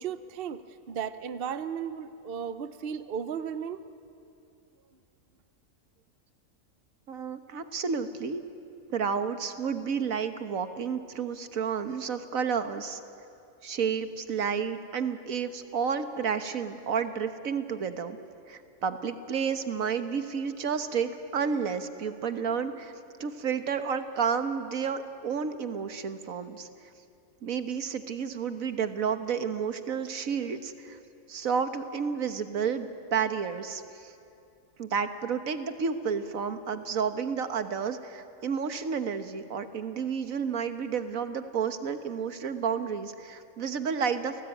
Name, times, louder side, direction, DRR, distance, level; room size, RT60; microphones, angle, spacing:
voice 1, 0.0-3.9, right 7 dB, 50° right, 12 dB, 0.9 m, -35 dB
voice 2, 7.1-8.4 8.9-13.0 13.6-18.2 18.5-22.9 23.2-26.7 27.4-31.0 31.3-34.1 34.8-44.4, right 6 dB, 80° right, 9 dB, 1.7 m, -31 dB
30.0 x 19.0 x 9.2 m, 2.5 s
omnidirectional pair, 1.4 m